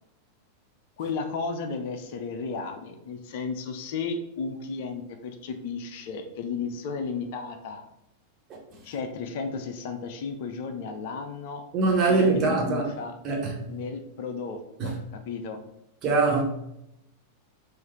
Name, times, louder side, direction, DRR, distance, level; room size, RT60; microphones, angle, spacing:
voice 1, 1.0-7.8 8.8-11.6 12.1-13.1 13.7-15.6, left 5 dB, 50° left, 0.5 m, -34 dB
voice 2, 11.7-12.9 13.2-13.7 14.8-15.0 16.0-16.4, right 3 dB, 35° right, 1.4 m, -23 dB
4.8 x 2.6 x 4.3 m
figure-of-eight pair, 90°, 0 cm